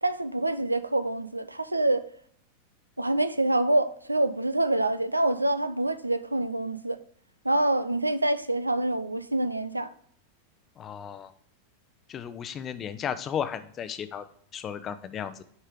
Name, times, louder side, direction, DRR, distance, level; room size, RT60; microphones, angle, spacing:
voice 1, 0.0-2.1 3.0-7.0 7.4-9.9, right 2 dB, 85° right, 0.4 m, -26 dB
voice 2, 10.8-11.3 12.1-14.2 14.5-15.4, left 8 dB, 30° left, 0.6 m, -34 dB
8.4 x 4.3 x 5.1 m
figure-of-eight pair, 90°, 0 cm